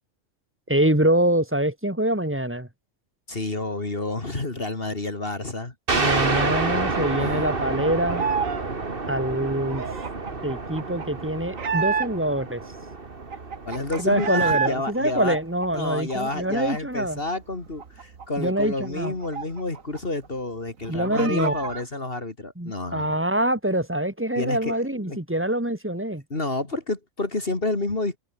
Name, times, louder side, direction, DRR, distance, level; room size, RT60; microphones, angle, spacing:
voice 1, 0.7-2.7 5.9-8.2 9.1-9.8 10.4-12.6 14.0-17.2 18.4-19.1 20.9-21.5 22.6-26.2, right 1 dB, 10° right, 2.6 m, -25 dB
voice 2, 3.3-5.7 7.2-7.4 13.6-15.4 15.7-23.1 24.4-24.8 25.1-25.2 26.3-28.2, left 2 dB, 45° left, 3.0 m, -29 dB
sound 1, 5.9-15.1, right 3 dB, 45° right, 2.5 m, -29 dB
sound 2, 7.0-8.6 8.9-12.4 12.8-12.9 13.1-14.7 15.1-16.8 17.1-17.2 17.5-20.0 20.2-20.3 20.7-21.8, right 6 dB, 90° right, 2.1 m, -30 dB
omnidirectional pair, 1.3 m